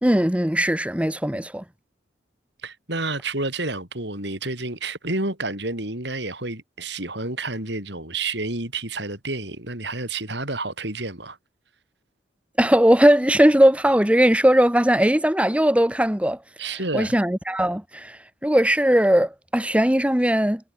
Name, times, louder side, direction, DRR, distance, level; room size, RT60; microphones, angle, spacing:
voice 1, 0.0-1.6 12.6-16.4 16.9-20.7, equal, 5° right, 1.1 m, -19 dB
voice 2, 2.6-11.4 16.6-17.2, right 2 dB, 60° right, 5.7 m, -30 dB
head